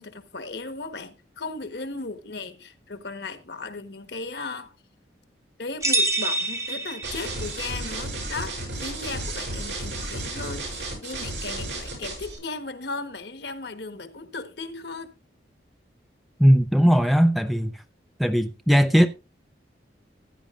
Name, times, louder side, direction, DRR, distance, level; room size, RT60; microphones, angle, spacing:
voice 1, 0.0-4.7 5.6-15.1, left 3 dB, 65° left, 1.2 m, -36 dB
sound 1, 5.8-7.6, right 2 dB, 15° right, 1.0 m, -26 dB
sound 2, 7.0-12.4, right 2 dB, 75° right, 6.4 m, -33 dB
voice 2, 16.4-17.8 18.2-19.1, equal, ahead, 0.5 m, -18 dB
15.5 x 10.0 x 2.5 m
head